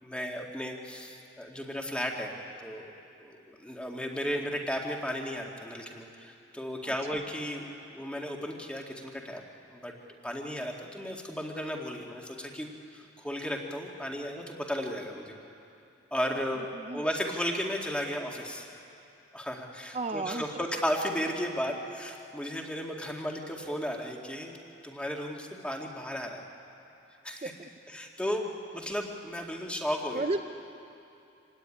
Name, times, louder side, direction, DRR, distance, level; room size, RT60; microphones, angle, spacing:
voice 1, 0.0-2.9 3.2-7.7 7.9-9.4 9.7-10.0 10.2-15.4 16.1-16.7 16.9-18.7 19.3-26.4 27.2-27.5 27.9-30.3, equal, 5° left, 1 dB, 2.0 m, -34 dB
voice 2, 19.9-20.4 27.4-27.7 30.1-30.4, right 2 dB, 35° right, 5 dB, 0.6 m, -33 dB
26.0 x 17.5 x 10.0 m, 2.8 s
head